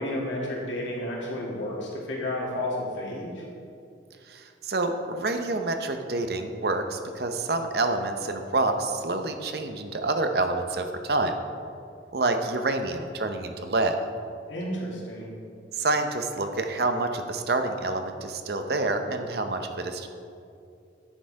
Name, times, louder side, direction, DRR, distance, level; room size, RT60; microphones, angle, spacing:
voice 1, 0.0-3.4 14.5-15.3, left 1 dB, 85° left, -4 dB, 2.3 m, -31 dB
voice 2, 4.3-11.4 12.1-14.0 15.7-20.1, right 2 dB, 55° right, 6 dB, 0.7 m, -27 dB
9.8 x 6.5 x 4.7 m, 2.5 s
head